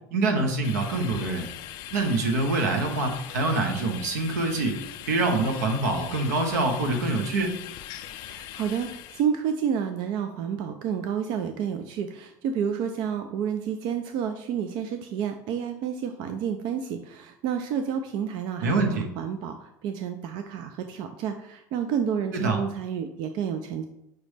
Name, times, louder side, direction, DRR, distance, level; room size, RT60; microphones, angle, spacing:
voice 1, 0.1-1.5 1.9-4.8 5.1-7.5 18.6-19.0 22.3-22.6, right 2 dB, 90° right, 3 dB, 0.8 m, -25 dB
sound 1, 0.6-9.2, left 12 dB, 60° left, 0.3 m, -41 dB
voice 2, 8.3-23.9, right 8 dB, 60° right, 7 dB, 0.4 m, -30 dB
6.0 x 2.1 x 3.2 m, 0.86 s
hypercardioid pair, 90°, 9 cm